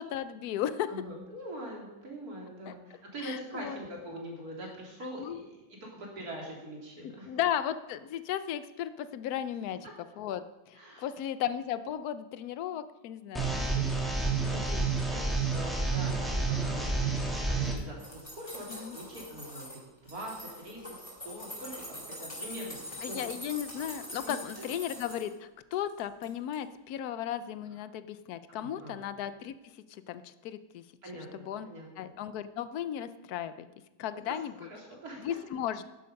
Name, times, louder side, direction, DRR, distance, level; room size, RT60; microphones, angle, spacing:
voice 1, 0.0-0.9 2.7-2.8 3.2-3.8 5.2-5.4 7.0-9.9 10.2-13.7 14.0-14.1 14.4-14.9 18.7-19.0 23.0-29.6 29.9-30.8 31.5-31.7 32.0-33.7 34.0-34.5 35.2-35.8, left 10 dB, 65° left, 12 dB, 1.1 m, -35 dB
voice 2, 0.9-7.4 9.8-9.9 10.7-11.1 14.5-14.6 15.1-22.8 23.1-23.2 24.2-24.7 28.5-29.0 31.0-32.1 34.3-34.4 34.6-35.4, right 1 dB, 55° right, -2 dB, 3.5 m, -43 dB
sound 1, 13.3-17.7, right 3 dB, ahead, 1.7 m, -29 dB
sound 2, 17.6-19.8 20.1-25.3 25.7-26.3 26.5-26.6, equal, 15° left, 3.7 m, -43 dB
11.0 x 10.5 x 5.3 m, 1.1 s
omnidirectional pair, 1.9 m